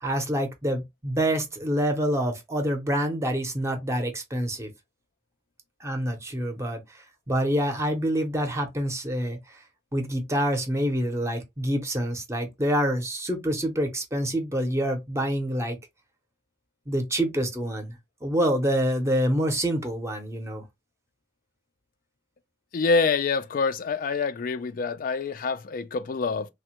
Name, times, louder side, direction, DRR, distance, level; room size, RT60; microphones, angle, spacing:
voice 1, 0.0-4.7 5.8-9.6 9.9-15.8 16.9-18.0 18.2-20.6, equal, 15° right, 0.6 m, -27 dB
voice 2, 22.7-26.5, left 4 dB, 50° left, 0.3 m, -26 dB
3.3 x 2.1 x 2.8 m
head